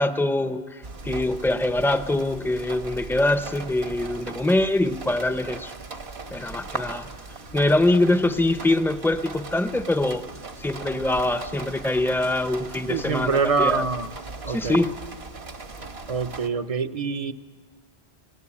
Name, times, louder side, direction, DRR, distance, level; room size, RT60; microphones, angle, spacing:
voice 1, 0.0-5.7 6.3-7.1 7.5-10.3 10.6-13.8 14.5-15.0, left 2 dB, ahead, 0.7 m, -24 dB
sound 1, 0.8-16.5, right 3 dB, 70° right, 1.7 m, -38 dB
voice 2, 12.9-14.1 14.4-14.8 16.1-17.3, right 5 dB, 35° right, 0.8 m, -25 dB
30.0 x 19.0 x 8.6 m
omnidirectional pair, 1.1 m